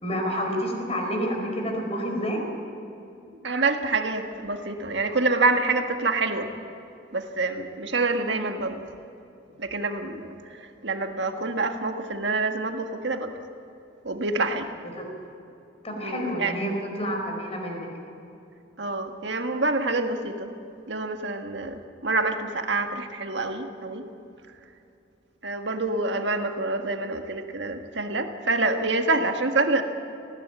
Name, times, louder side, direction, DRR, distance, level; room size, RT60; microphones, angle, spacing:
voice 1, 0.0-2.5 15.0-15.1 15.8-16.7 17.0-17.9, equal, 30° left, 2 dB, 4.7 m, -29 dB
voice 2, 3.4-6.5 7.1-8.9 9.6-13.3 14.0-14.7 16.0-16.5 18.8-20.5 20.9-24.0 25.4-29.8, right 3 dB, 60° right, 5 dB, 1.7 m, -27 dB
19.5 x 16.5 x 8.7 m, 2.8 s
head